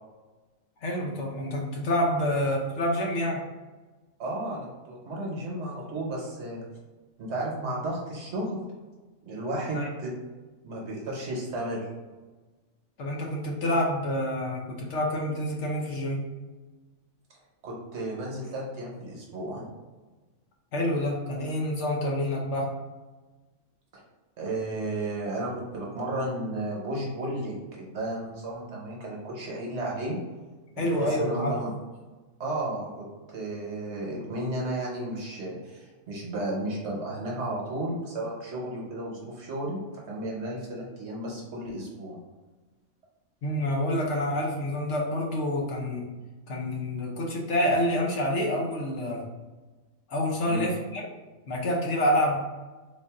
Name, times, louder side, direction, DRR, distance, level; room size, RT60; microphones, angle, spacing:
voice 1, 0.8-3.4 9.7-9.9 13.0-16.3 20.7-22.7 30.8-31.5 43.4-46.1 46.5-49.3 50.1-51.1 51.5-52.4, left 1 dB, 65° left, -1 dB, 1.0 m, -27 dB
voice 2, 4.2-6.6 7.2-8.6 9.2-10.1 10.6-11.9 17.6-19.7 23.9-24.0 24.4-30.2 30.8-31.7 32.4-32.9 33.3-39.8 40.1-42.2 50.4-50.7, right 1 dB, 60° right, -3 dB, 1.1 m, -33 dB
3.8 x 2.5 x 3.6 m, 1.2 s
omnidirectional pair, 1.4 m